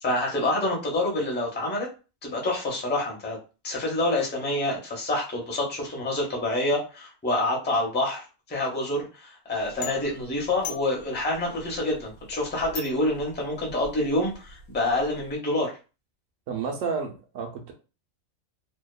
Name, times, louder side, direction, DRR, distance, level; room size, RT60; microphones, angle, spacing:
voice 1, 0.0-1.9 2.2-3.4 3.6-8.2 8.5-15.7, left 1 dB, 15° left, -2 dB, 0.4 m, -27 dB
sound 1, 9.6-15.4, left 5 dB, 80° left, 1.0 m, -42 dB
voice 2, 16.5-17.7, right 5 dB, 70° right, 1 dB, 1.0 m, -31 dB
2.7 x 2.2 x 2.2 m, 0.32 s
omnidirectional pair, 1.5 m